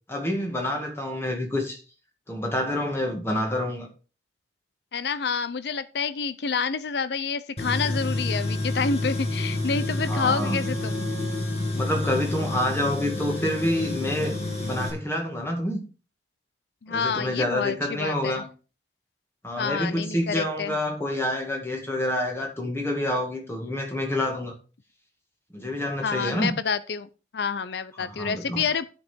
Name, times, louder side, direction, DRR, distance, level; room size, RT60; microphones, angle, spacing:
voice 1, 0.1-1.8 2.3-3.9 10.1-10.6 11.7-15.8 16.9-18.5 19.4-24.5 25.5-26.5 28.0-28.6, left 1 dB, 15° left, 2.0 m, -28 dB
voice 2, 4.9-11.0 16.8-18.4 19.6-20.8 26.0-28.8, left 5 dB, 65° left, 0.5 m, -28 dB
Tools, 7.6-14.9, left 2 dB, 35° left, 2.3 m, -29 dB
10.0 x 5.4 x 4.5 m
head